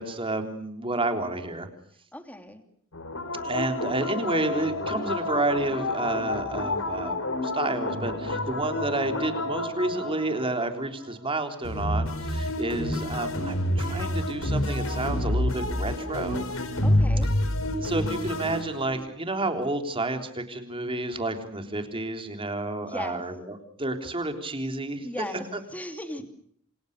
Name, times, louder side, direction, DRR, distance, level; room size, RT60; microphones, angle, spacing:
voice 1, 0.0-1.7 3.4-16.4 17.8-25.1 25.3-25.4, right 2 dB, 25° right, 6 dB, 3.7 m, -30 dB
voice 2, 2.1-2.6 16.8-17.3 22.9-23.2 25.0-25.4 25.7-26.2, left 1 dB, 10° left, 7 dB, 3.0 m, -36 dB
sound 1, 2.9-11.1 11.6-19.0, left 1 dB, 75° left, 4.3 m, -29 dB
28.0 x 27.0 x 6.7 m, 0.65 s
head